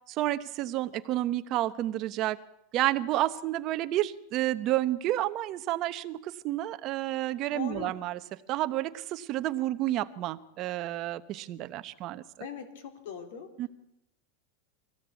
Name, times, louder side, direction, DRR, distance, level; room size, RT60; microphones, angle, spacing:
voice 1, 0.1-2.4 2.7-8.2 8.5-12.2 13.6-13.7, right 14 dB, 30° right, 11 dB, 0.9 m, -30 dB
voice 2, 7.5-7.9 12.4-13.7, left 7 dB, 65° left, 8 dB, 3.7 m, -40 dB
23.5 x 17.0 x 8.3 m, 0.81 s
supercardioid pair, 170°, 0 cm